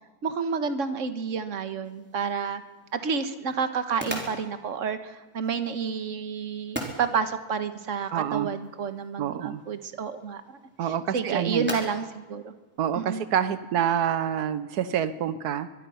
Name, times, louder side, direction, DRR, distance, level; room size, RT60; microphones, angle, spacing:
voice 1, 0.2-2.6 2.9-12.5 12.9-13.2, right 6 dB, 55° right, 10 dB, 1.7 m, -30 dB
sound 1, 1.8-13.5, equal, 5° right, 3.8 m, -42 dB
voice 2, 8.1-8.5 9.2-9.6 10.8-11.7 12.8-15.7, right 9 dB, 85° right, 13 dB, 1.4 m, -27 dB
23.5 x 22.0 x 5.8 m, 1.2 s
omnidirectional pair, 1.6 m